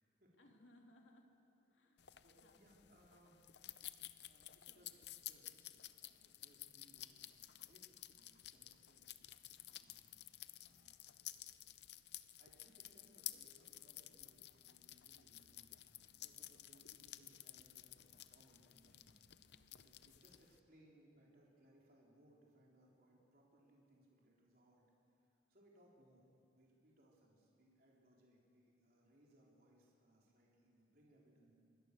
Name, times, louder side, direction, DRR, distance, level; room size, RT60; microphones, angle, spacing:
voice 1, 0.4-2.1 2.4-2.9 4.7-4.9, left 1 dB, 90° left, 2 dB, 2.8 m, -67 dB
sound 1, 2.0-20.6, left 14 dB, 65° left, 0.6 m, -54 dB
voice 2, 2.2-3.4 4.2-9.1 9.7-10.2 10.6-11.5 12.4-24.9 25.2-26.3 26.5-31.5, right 1 dB, 55° right, -3 dB, 4.0 m, -70 dB
25.5 x 21.0 x 6.8 m, 2.6 s
head